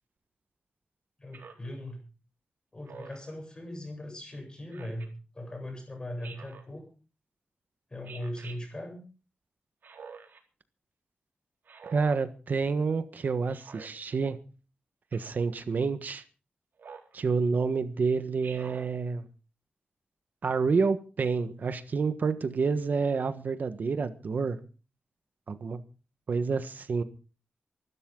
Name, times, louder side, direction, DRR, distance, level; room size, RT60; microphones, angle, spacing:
voice 1, 1.2-2.0 2.7-6.8 7.9-9.0, left 1 dB, 25° left, 8.0 m, -39 dB
Speech synthesizer, 1.3-1.7 2.8-3.3 4.7-5.1 6.2-6.7 8.0-8.6 9.8-10.4 11.6-12.2 13.5-13.9 15.1-15.4 16.8-17.1 18.4-18.9, right 5 dB, 80° right, 3.9 m, -47 dB
voice 2, 11.9-14.4 15.1-16.2 17.1-19.3 20.4-24.6 25.5-25.8 26.3-27.0, right 4 dB, 60° right, 1.4 m, -28 dB
24.5 x 12.5 x 3.8 m
wide cardioid pair, 135°, 3 cm